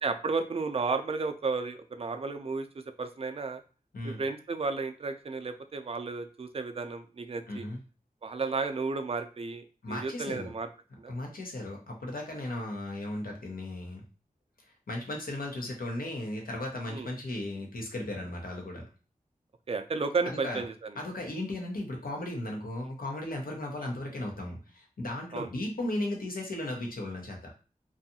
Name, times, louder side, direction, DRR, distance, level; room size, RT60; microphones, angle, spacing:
voice 1, 0.0-2.7 3.0-3.6 4.0-7.6 8.2-10.7 11.0-11.1 16.9-17.1 19.7-20.7 25.3-25.5, right 4 dB, 45° right, 8 dB, 0.4 m, -33 dB
voice 2, 7.5-7.8 9.8-10.5 10.9-14.0 14.9-18.9 20.4-20.6 21.0-27.5, left 1 dB, 85° left, 0 dB, 0.7 m, -36 dB
2.6 x 2.3 x 2.7 m, 0.35 s
wide cardioid pair, 65°, 14 cm